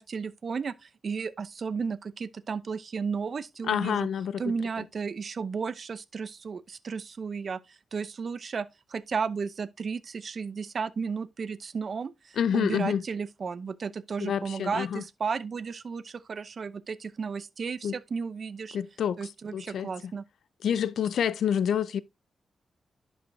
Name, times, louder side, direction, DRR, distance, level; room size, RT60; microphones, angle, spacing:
voice 1, 0.0-4.1 4.4-7.6 7.9-18.8 19.2-20.2, right 5 dB, 55° right, 0.7 m, -33 dB
voice 2, 3.6-4.4 4.8-4.9 12.4-13.0 14.2-15.0 17.8-18.0 18.7-20.1 20.6-22.0, left 8 dB, 80° left, 0.5 m, -28 dB
11.0 x 5.4 x 2.7 m
cardioid pair, 75°, 0 cm